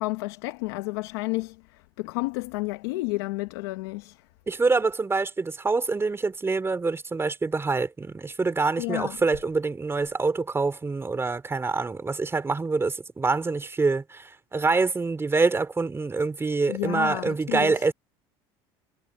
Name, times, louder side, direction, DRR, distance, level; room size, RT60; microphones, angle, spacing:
voice 1, 0.0-1.6 2.0-4.2 8.8-9.2 16.7-17.7, left 23 dB, 85° left, 1.0 m, -30 dB
voice 2, 4.5-17.9, right 3 dB, 20° right, 3.5 m, -25 dB
supercardioid pair, 95°, 13 cm